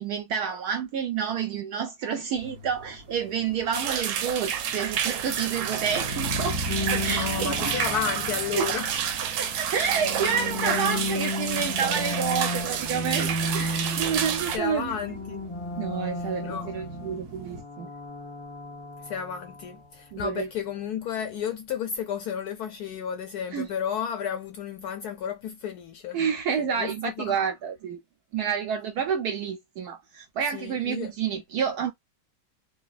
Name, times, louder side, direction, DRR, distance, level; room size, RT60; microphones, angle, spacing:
voice 1, 0.0-6.6 6.9-7.5 8.6-8.7 9.4-15.0 15.8-17.9 20.1-20.5 23.5-23.7 26.1-28.0 28.3-31.9, right 7 dB, 75° right, 0.9 m, -29 dB
sound 1, 2.4-17.6, right 1 dB, 55° right, 1.3 m, -40 dB
sound 2, 3.7-14.6, right 8 dB, 90° right, 1.4 m, -29 dB
sound 3, 6.7-9.1 9.7-14.6 14.9-19.8, left 1 dB, 20° left, 0.8 m, -34 dB
voice 2, 7.1-8.9 10.6-11.1 14.1-14.3 14.5-15.4 16.2-16.7 19.0-26.2 26.6-27.4 30.5-31.1, left 8 dB, 75° left, 0.9 m, -32 dB
3.9 x 2.2 x 2.4 m
omnidirectional pair, 2.1 m